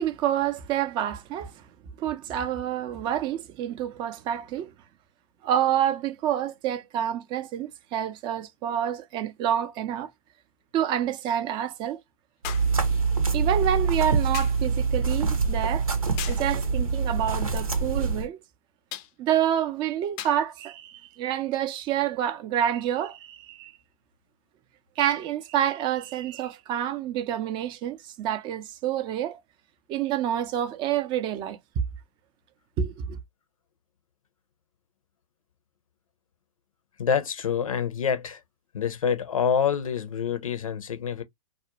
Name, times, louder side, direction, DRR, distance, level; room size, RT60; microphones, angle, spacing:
voice 1, 0.0-1.6 2.0-4.7 5.4-10.1 10.7-12.0 13.3-15.9 16.3-18.4 19.2-23.7 25.0-29.4 29.9-31.6 32.8-33.2, right 10 dB, 25° right, 0.4 m, -28 dB
sound 1, 8.7-8.8 12.4-12.8 14.3-14.7 16.2-16.5 18.9-19.2 20.2-20.5 21.5-21.6, left 12 dB, 35° left, 0.4 m, -37 dB
sound 2, 12.4-18.3, right 4 dB, 90° right, 0.8 m, -25 dB
voice 2, 37.0-38.4 38.7-41.2, left 7 dB, 75° left, 0.6 m, -26 dB
2.4 x 2.1 x 2.8 m
figure-of-eight pair, 110°, 18 cm